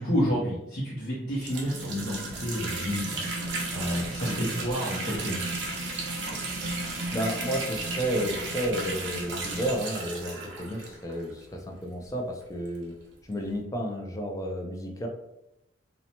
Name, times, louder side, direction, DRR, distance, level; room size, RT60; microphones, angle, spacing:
voice 1, 0.0-5.4, equal, 60° left, -9 dB, 0.8 m, -30 dB
sound 1, 1.3-11.4 12.1-12.2 12.4-12.5 13.5-13.6, right 2 dB, 90° right, 0.6 m, -34 dB
voice 2, 7.1-12.9 13.3-15.1, equal, 20° left, 2 dB, 0.4 m, -32 dB
2.7 x 2.1 x 2.8 m, 0.86 s
head